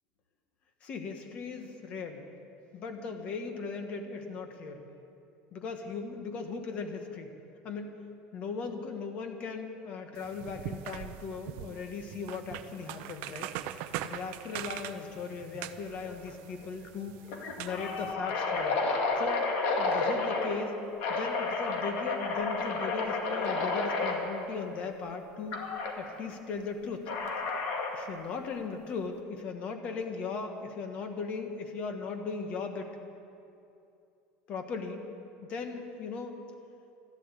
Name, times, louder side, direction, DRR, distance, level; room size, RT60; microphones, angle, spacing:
voice 1, 0.8-2.2 2.7-4.9 5.5-7.3 7.6-8.0 8.3-13.5 14.0-17.1 17.6-18.8 19.2-19.5 19.8-20.7 21.1-25.6 26.0-27.0 27.9-32.9 34.5-35.0 35.5-36.4, left 4 dB, 35° left, 5 dB, 1.4 m, -38 dB
sound 1, 10.2-18.1, right 12 dB, 55° right, 0.6 m, -42 dB
sound 2, 16.0-16.3 16.6-16.7 17.3-20.5 21.0-24.2 25.5-25.9 27.1-28.0, left 3 dB, 55° left, 2.2 m, -31 dB
13.5 x 12.0 x 8.4 m, 2.7 s
cardioid pair, 170°, 4 cm